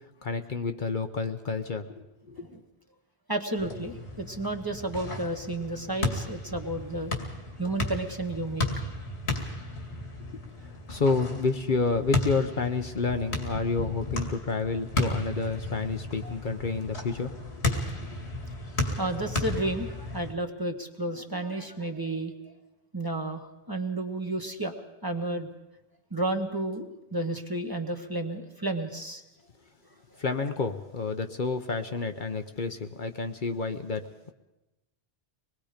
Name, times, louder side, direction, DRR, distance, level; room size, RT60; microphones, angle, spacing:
voice 1, 0.2-2.4 10.3-10.4 10.9-17.3 17.7-17.8 18.2-18.3 30.2-34.3, left 4 dB, 50° left, 6 dB, 1.0 m, -29 dB
voice 2, 3.3-7.1 7.6-8.7 16.2-16.3 18.9-22.4 22.9-25.5 26.1-29.2, right 2 dB, 20° right, 4 dB, 1.3 m, -32 dB
sound 1, 3.6-20.3, left 2 dB, 80° left, 2.6 m, -34 dB
25.0 x 20.5 x 5.1 m, 0.99 s
omnidirectional pair, 1.1 m